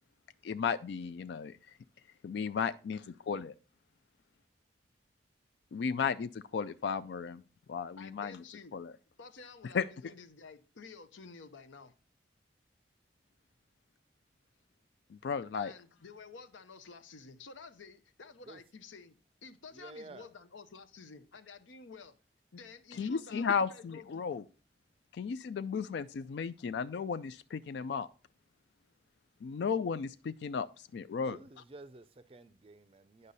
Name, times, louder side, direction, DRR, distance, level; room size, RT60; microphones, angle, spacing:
voice 1, 0.4-1.6 2.2-3.0 3.3-3.5 5.7-7.4 7.7-8.4 8.7-8.9 9.7-9.9 15.1-15.7 22.9-24.4 25.1-28.1 29.4-31.4, left 6 dB, 70° left, 0.3 m, -34 dB
voice 2, 8.0-8.8 9.2-11.9 15.5-22.2 22.5-24.3, left 4 dB, 90° left, 0.8 m, -51 dB
voice 3, 19.7-20.3 31.1-33.3, right 2 dB, 30° right, 0.4 m, -51 dB
10.0 x 5.3 x 4.0 m
head